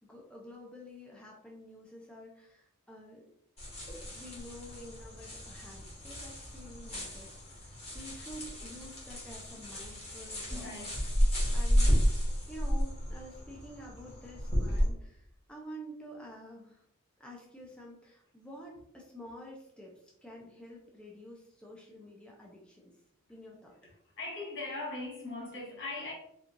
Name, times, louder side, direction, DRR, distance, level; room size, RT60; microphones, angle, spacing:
voice 1, 0.0-3.3 4.1-10.7 11.5-16.8 17.2-22.9 23.3-23.7, equal, 5° left, 0.5 m, -49 dB
sound 1, 3.6-14.9, equal, 30° left, 1.3 m, -32 dB
voice 2, 10.5-11.0 24.2-26.1, left 2 dB, 60° left, 1.1 m, -39 dB
4.3 x 2.4 x 2.5 m
head